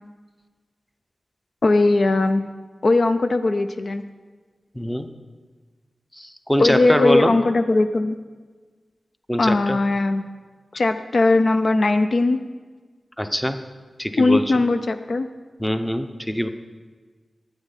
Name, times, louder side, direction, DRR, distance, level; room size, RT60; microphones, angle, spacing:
voice 1, 1.6-2.4 2.8-4.0 6.6-8.2 9.4-10.2 10.7-12.4 14.2-15.3, left 2 dB, 60° left, 8 dB, 0.5 m, -19 dB
voice 2, 4.8-5.1 6.2-7.3 9.3-9.8 13.2-13.6 14.0-14.4 15.6-16.5, equal, 10° left, 8 dB, 0.7 m, -23 dB
11.5 x 9.2 x 5.8 m, 1.4 s
wide cardioid pair, 85°, 0 cm